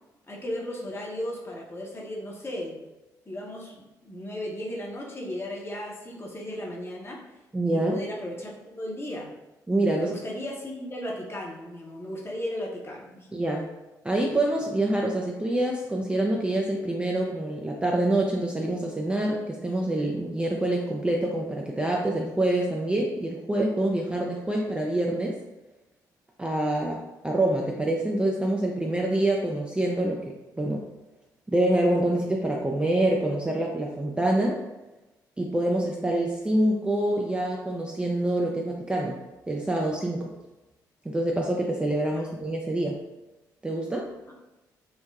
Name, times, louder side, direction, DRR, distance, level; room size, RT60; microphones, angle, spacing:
voice 1, 0.3-2.8 3.3-7.2 7.7-9.3 9.9-13.3 42.2-42.3 44.3-44.4, left 1 dB, 25° left, -2 dB, 0.7 m, -35 dB
voice 2, 7.5-8.0 9.7-10.1 13.3-13.7 14.0-25.4 26.4-30.9 31.5-34.6 35.4-39.2 39.5-40.3 41.0-43.0 43.6-44.1, right 1 dB, 10° right, -1 dB, 0.4 m, -26 dB
3.2 x 2.0 x 2.3 m, 1.0 s
figure-of-eight pair, 40°, 10 cm